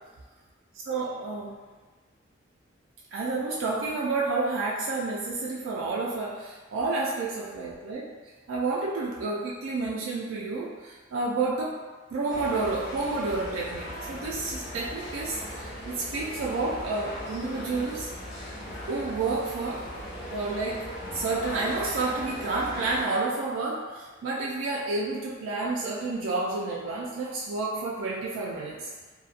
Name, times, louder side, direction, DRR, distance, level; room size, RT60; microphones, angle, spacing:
voice 1, 0.9-1.6 3.1-8.1 8.5-11.7 12.1-18.1 18.9-20.9 21.1-28.9, right 3 dB, 90° right, -4 dB, 0.4 m, -30 dB
sound 1, 12.3-23.0, equal, 60° left, 0.8 m, -38 dB
2.7 x 2.1 x 2.4 m, 1.4 s
head